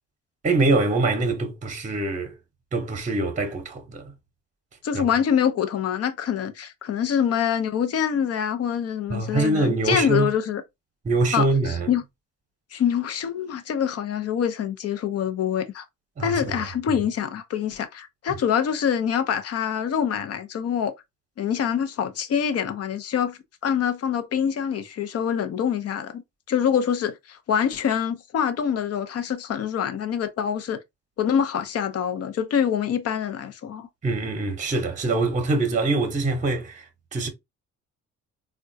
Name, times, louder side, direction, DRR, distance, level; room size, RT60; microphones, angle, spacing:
voice 1, 0.4-2.4 2.7-4.1 4.9-5.0 9.1-10.3 11.0-11.9 16.2-16.6 16.9-17.0 34.0-37.3, right 2 dB, 25° right, 0.8 m, -24 dB
voice 2, 4.8-10.6 11.3-12.0 12.7-15.8 16.2-20.9 21.4-26.2 26.5-30.8 31.2-33.9, left 8 dB, 55° left, 0.6 m, -25 dB
3.5 x 2.3 x 2.6 m
cardioid pair, 90°, 30 cm